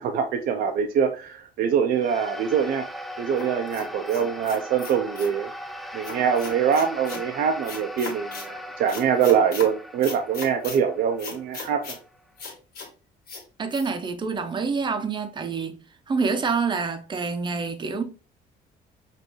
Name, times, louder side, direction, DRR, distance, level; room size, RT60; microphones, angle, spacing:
voice 1, 0.0-2.8 3.2-5.5 5.9-12.0, right 7 dB, 65° right, 0.5 m, -24 dB
sound 1, 1.9-12.5, equal, ahead, 0.4 m, -39 dB
sound 2, 3.4-5.4 6.0-7.2 7.6-8.5 8.9-9.7 10.0-10.8 11.2-12.0 12.4-12.9 13.3-13.4 13.7-13.9, left 4 dB, 60° left, 1.8 m, -37 dB
voice 2, 13.6-15.8 16.1-18.0, right 5 dB, 25° right, 0.7 m, -27 dB
5.3 x 2.6 x 3.0 m
cardioid pair, 110°, 17 cm